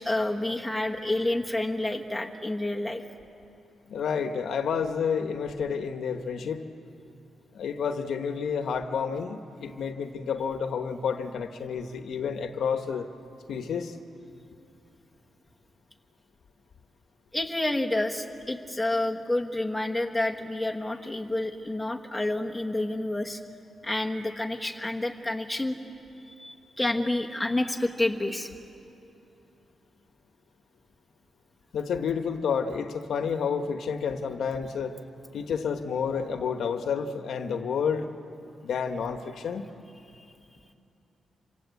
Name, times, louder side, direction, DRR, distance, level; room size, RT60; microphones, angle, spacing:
voice 1, 0.0-3.0 17.3-23.4 23.8-25.8 26.3-28.5 40.1-40.2, left 1 dB, 5° left, 1 dB, 1.3 m, -29 dB
voice 2, 3.9-6.7 7.5-13.1 13.5-14.0 31.7-34.9 35.3-38.1 38.6-39.6, left 6 dB, 65° left, 7 dB, 1.2 m, -30 dB
27.0 x 26.0 x 8.2 m, 2.7 s
wide cardioid pair, 180°, 0 cm